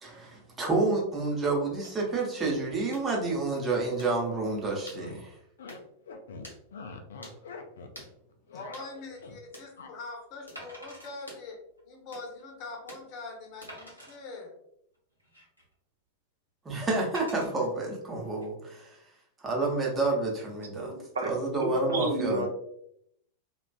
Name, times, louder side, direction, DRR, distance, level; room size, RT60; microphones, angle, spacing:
voice 1, 0.0-5.3 16.6-19.0 19.4-20.9 21.2-22.5, right 3 dB, 15° right, -2 dB, 0.7 m, -29 dB
sound 1, 1.8-2.0 2.9-3.1 4.0-4.2 4.9-5.1 5.7-5.9 6.4-6.6 7.2-7.4 7.9-8.1 8.7-8.9 9.5-9.7 10.5-10.6 11.3-11.5 12.1-12.3 12.9-13.1 13.6-13.9, equal, 80° left, 0.7 m, -48 dB
sound 2, 4.9-5.2 5.6-5.8 6.1-8.0 8.3-9.4 9.8-9.9, left 4 dB, 65° left, 0.3 m, -44 dB
voice 2, 8.5-11.6 11.8-14.5, left 3 dB, 40° left, 0 dB, 0.7 m, -43 dB
Wood, 8.9-9.1 10.5-11.1 11.8-11.9 12.4-12.5 13.7-14.2 14.9-15.7 17.1-17.5 18.2-18.4, equal, 85° right, 0.9 m, -46 dB
voice 3, 20.7-21.3 21.6-22.5, right 2 dB, 70° right, 3 dB, 0.4 m, -32 dB
2.4 x 2.3 x 2.2 m, 0.73 s
figure-of-eight pair, 90°, 0 cm